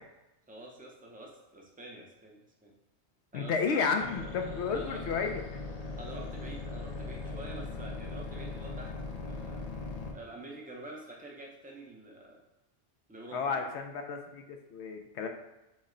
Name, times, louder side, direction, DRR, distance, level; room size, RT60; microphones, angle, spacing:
voice 1, 0.5-2.7 3.3-3.9 4.7-5.3 6.0-8.9 9.3-9.6 10.1-12.4 13.1-13.7, right 1 dB, 10° right, -1 dB, 0.5 m, -47 dB
voice 2, 3.3-5.4 13.3-15.3, left 5 dB, 80° left, 5 dB, 0.9 m, -32 dB
sound 1, 4.0-10.1, left 3 dB, 50° left, 0.5 m, -39 dB
6.1 x 2.1 x 3.7 m, 0.99 s
omnidirectional pair, 1.1 m